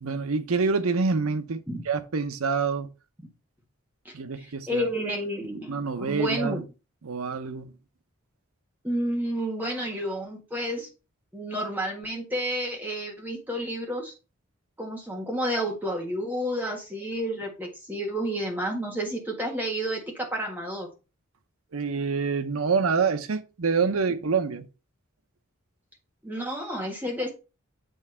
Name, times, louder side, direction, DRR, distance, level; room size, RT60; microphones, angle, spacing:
voice 1, 0.0-2.9 4.1-4.9 5.7-6.6 7.0-7.7 21.7-24.7, right 5 dB, 90° right, 0.7 m, -26 dB
voice 2, 4.0-6.6 8.8-10.9 11.3-14.1 14.8-20.9 26.2-27.3, equal, 10° right, 1.6 m, -30 dB
8.1 x 3.6 x 4.4 m
head